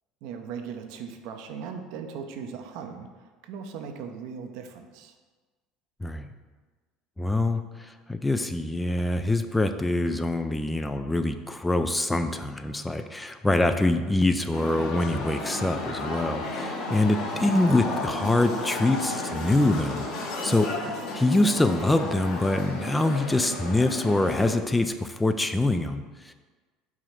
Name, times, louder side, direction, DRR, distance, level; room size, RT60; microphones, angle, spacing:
voice 1, 0.2-5.2 13.5-13.7 20.8-21.3, right 6 dB, 55° right, 5 dB, 0.7 m, -39 dB
voice 2, 7.2-20.7 21.1-26.3, left 2 dB, 10° left, 8 dB, 0.4 m, -25 dB
sound 1, 14.5-24.5, left 2 dB, 55° left, 1.5 m, -33 dB
4.9 x 4.8 x 5.7 m, 1.4 s
figure-of-eight pair, 65°, 0 cm